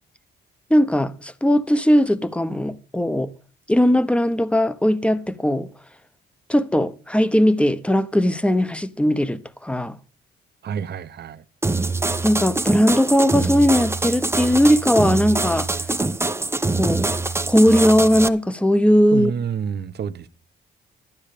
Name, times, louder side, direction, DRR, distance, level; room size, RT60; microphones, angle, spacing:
voice 1, 0.7-3.3 3.7-5.7 6.5-10.0 12.2-15.7 16.8-17.2 17.5-19.3, equal, 5° left, 1.0 m, -18 dB
voice 2, 10.6-11.4 19.1-20.3, right 7 dB, 55° right, 1.1 m, -28 dB
sound 1, 11.6-18.3, right 3 dB, 15° right, 0.8 m, -24 dB
12.0 x 10.5 x 5.1 m
cardioid pair, 90°, 20 cm